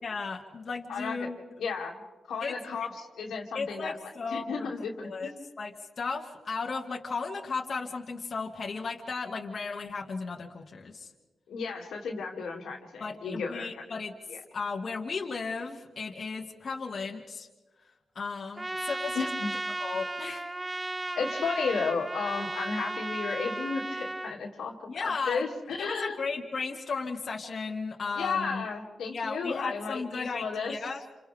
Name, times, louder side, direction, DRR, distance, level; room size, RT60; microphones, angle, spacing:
voice 1, 0.0-1.4 2.4-2.9 3.5-4.7 5.0-5.3 5.6-11.1 13.0-17.5 18.2-19.3 19.8-20.4 24.9-25.4 25.8-28.7 29.1-31.0, left 4 dB, 55° left, 0 dB, 2.2 m, -35 dB
voice 2, 0.9-1.3 1.6-2.0 2.3-5.5 11.5-13.8 14.3-14.4 19.1-19.5 21.2-26.2 28.1-30.7, left 5 dB, 85° left, -1 dB, 2.8 m, -33 dB
Trumpet, 18.6-24.3, right 2 dB, 20° right, 0.9 m, -35 dB
29.0 x 28.0 x 3.6 m, 1.2 s
cardioid pair, 65°, 0 cm